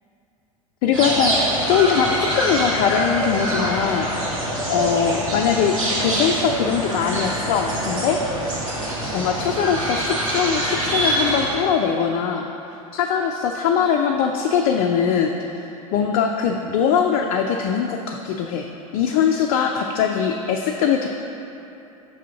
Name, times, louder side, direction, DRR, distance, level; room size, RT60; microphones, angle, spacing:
voice 1, 0.8-4.4 4.7-8.2 9.1-12.5 12.9-18.7 18.9-21.1, left 7 dB, 45° left, 3 dB, 0.4 m, -21 dB
sound 1, 0.9-11.5, right 1 dB, 65° right, 1.5 m, -24 dB
5.4 x 3.7 x 5.6 m, 2.9 s
figure-of-eight pair, 80°, 18 cm